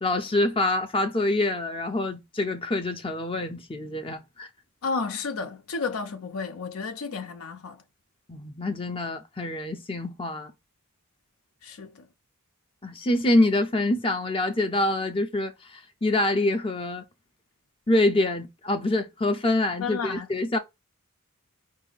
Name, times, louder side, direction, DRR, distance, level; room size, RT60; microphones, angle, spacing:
voice 1, 0.0-4.5 8.3-10.5 12.8-17.0 17.9-20.6, left 2 dB, 25° left, 0.6 m, -26 dB
voice 2, 4.8-7.8 11.6-12.1 19.8-20.3, left 4 dB, 65° left, 0.6 m, -32 dB
5.0 x 2.7 x 3.9 m
head